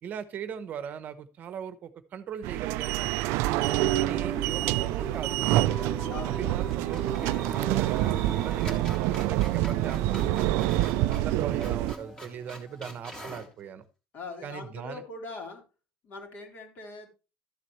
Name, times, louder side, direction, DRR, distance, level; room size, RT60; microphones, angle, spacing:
voice 1, 0.0-3.5 3.9-5.9 6.3-10.7 11.1-13.8 14.4-15.0, right 8 dB, 40° right, 11 dB, 0.9 m, -39 dB
sound 1, 2.4-11.9, right 16 dB, 80° right, 0.4 m, -27 dB
sound 2, 3.6-12.5, right 2 dB, 5° right, 1.1 m, -40 dB
sound 3, 4.5-4.6 4.9-5.0 6.5-6.6 6.9-13.5, equal, 15° left, 2.3 m, -45 dB
voice 2, 6.1-6.4 14.1-15.6 16.0-17.1, left 3 dB, 45° left, 3 dB, 3.2 m, -41 dB
13.0 x 7.5 x 3.2 m, 0.29 s
cardioid pair, 150°, 4 cm